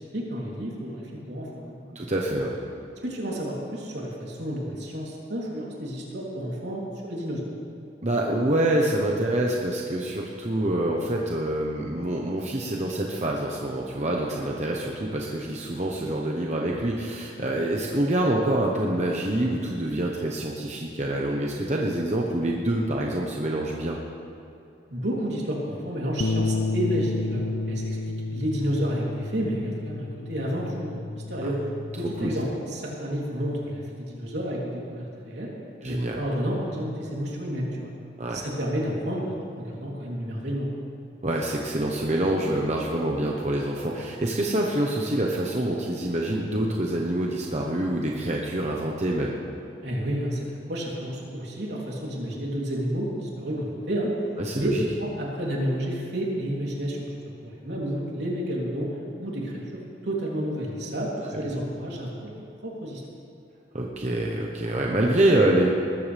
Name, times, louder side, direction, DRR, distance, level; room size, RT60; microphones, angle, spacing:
voice 1, 0.1-2.0 3.0-7.4 24.9-28.0 28.3-31.6 32.0-35.5 35.8-37.9 38.3-40.7 49.8-50.4 50.7-54.1 54.5-54.7 55.0-57.0 57.4-58.9 59.2-59.5 60.0-61.1 61.3-62.4 62.6-63.0, equal, 80° right, -4 dB, 3.3 m, -30 dB
voice 2, 1.9-2.6 8.0-24.0 32.2-32.3 35.8-36.2 38.2-38.4 41.2-49.4 54.4-54.8 61.3-61.4 63.7-65.7, right 1 dB, 40° right, -1 dB, 1.1 m, -26 dB
Bass guitar, 26.2-32.5, left 3 dB, 85° left, 0.5 m, -31 dB
20.0 x 13.5 x 3.5 m, 2.7 s
head